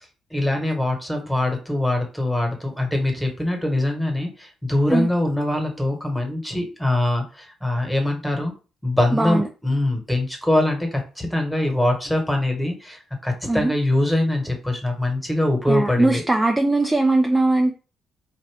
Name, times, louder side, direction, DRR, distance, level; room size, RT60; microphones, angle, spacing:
voice 1, 0.3-8.5 8.8-16.2, left 1 dB, 5° left, 3 dB, 1.3 m, -23 dB
voice 2, 9.1-9.4 13.5-13.7 15.7-17.7, right 2 dB, 10° right, 3 dB, 0.5 m, -20 dB
4.2 x 2.6 x 3.4 m, 0.34 s
cardioid pair, 90°, 0 cm